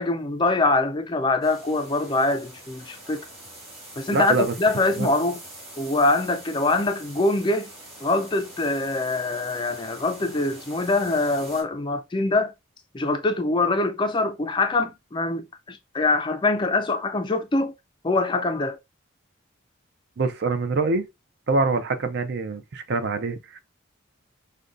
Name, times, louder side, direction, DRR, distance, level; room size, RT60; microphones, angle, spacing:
voice 1, 0.0-3.3 4.0-5.4 5.8-7.7 8.0-12.5 12.9-17.7 18.0-18.8, left 2 dB, 20° left, 0.3 m, -24 dB
sound 1, 1.4-11.6, right 1 dB, 30° right, 2.3 m, -44 dB
voice 2, 4.1-4.5 5.0-5.1 20.2-21.0 21.5-23.6, right 3 dB, 55° right, 0.5 m, -25 dB
5.1 x 2.2 x 2.4 m
head